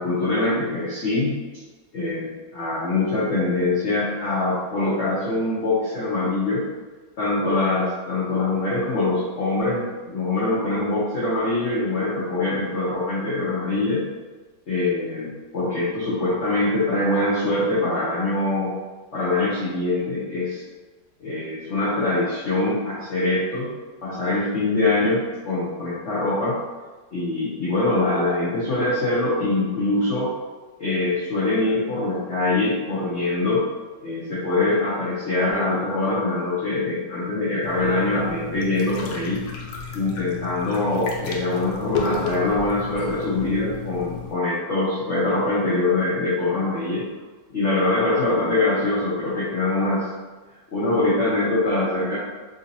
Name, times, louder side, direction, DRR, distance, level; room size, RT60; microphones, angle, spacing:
voice 1, 0.0-1.4 1.9-2.3 2.5-6.6 7.2-14.0 14.7-18.7 19.1-20.6 21.2-23.7 24.0-26.6 27.1-30.3 30.8-33.6 34.0-39.4 39.9-47.1 47.5-50.1 50.7-52.2, left 2 dB, 55° left, -9 dB, 0.8 m, -23 dB
sound 1, 37.6-44.3, left 4 dB, 75° left, 1.2 m, -33 dB
3.8 x 2.7 x 2.6 m, 1.3 s
omnidirectional pair, 2.0 m